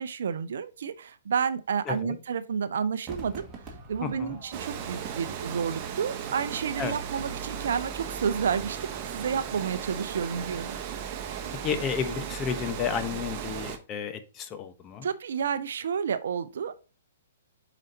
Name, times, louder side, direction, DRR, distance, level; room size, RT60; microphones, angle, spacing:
voice 1, 0.0-10.8 15.0-16.8, right 7 dB, 65° right, 0.6 m, -30 dB
voice 2, 1.8-2.2 4.0-4.4 6.8-7.0 11.6-15.1, left 7 dB, 25° left, 0.9 m, -32 dB
Crowd / Fireworks, 3.1-8.5 8.7-8.8, right 3 dB, 20° right, 1.8 m, -47 dB
Water, 4.5-13.8, right 8 dB, 35° right, 1.0 m, -36 dB
7.5 x 5.1 x 2.8 m
figure-of-eight pair, 120°, 0 cm